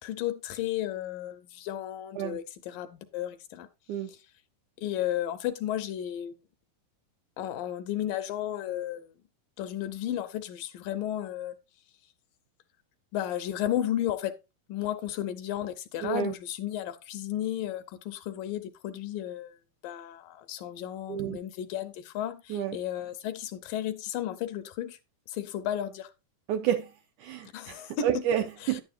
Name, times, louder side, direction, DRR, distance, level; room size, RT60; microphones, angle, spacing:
voice 1, 0.0-3.7 4.1-4.2 4.8-6.3 7.4-9.1 9.6-11.6 13.1-14.3 14.7-19.5 19.8-25.0 25.3-26.1 27.5-28.2 28.6-28.8, left 11 dB, 80° left, 2.3 m, -33 dB
voice 2, 16.0-16.3 21.1-21.4 22.5-22.8 26.5-26.9 27.2-28.8, right 10 dB, 80° right, 1.8 m, -30 dB
10.5 x 9.7 x 2.5 m
omnidirectional pair, 4.1 m